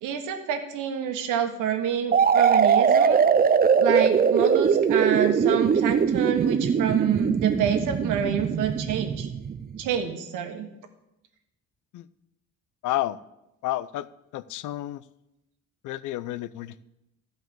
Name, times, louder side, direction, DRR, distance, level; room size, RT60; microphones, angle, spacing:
voice 1, 0.0-3.2 3.8-9.3 9.8-10.7, right 8 dB, 90° right, 6 dB, 1.3 m, -28 dB
sound 1, 2.1-9.8, right 6 dB, 30° right, 0.5 m, -21 dB
voice 2, 12.8-13.2 13.6-14.1 14.3-15.0 15.8-16.8, left 14 dB, 85° left, 18 dB, 0.5 m, -30 dB
12.0 x 5.2 x 7.7 m, 0.90 s
cardioid pair, 90°, 30 cm